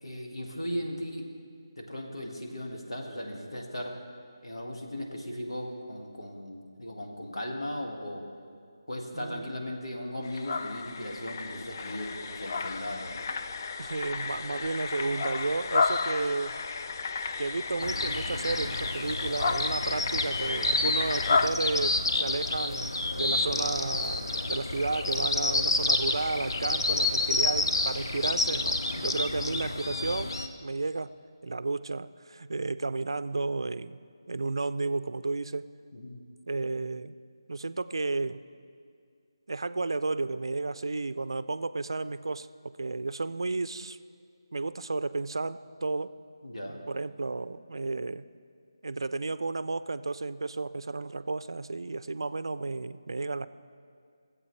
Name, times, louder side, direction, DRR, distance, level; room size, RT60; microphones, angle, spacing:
voice 1, 0.0-1.3 1.8-4.0 4.4-8.2 8.9-13.2 23.3-23.5 35.9-36.2 46.4-46.8, left 1 dB, 85° left, 1 dB, 1.7 m, -37 dB
voice 2, 9.1-9.5 13.8-16.6 17.4-30.3 30.6-31.1 31.4-34.0 34.3-35.7 36.5-37.2 37.5-38.4 39.5-44.0 44.5-46.2 46.7-48.3 48.8-53.5, right 3 dB, 70° right, 14 dB, 0.4 m, -32 dB
sound 1, 10.2-21.5, left 4 dB, 40° left, 0.4 m, -32 dB
sound 2, 17.8-30.5, left 2 dB, 60° left, 0.7 m, -29 dB
sound 3, 21.8-22.1 22.7-22.9 23.3-24.4 24.7-25.3 25.8-26.4 27.0-27.2 27.5-27.7 28.1-28.3, right 2 dB, ahead, 1.2 m, -54 dB
21.0 x 7.8 x 3.2 m, 2.2 s
figure-of-eight pair, 160°, 3 cm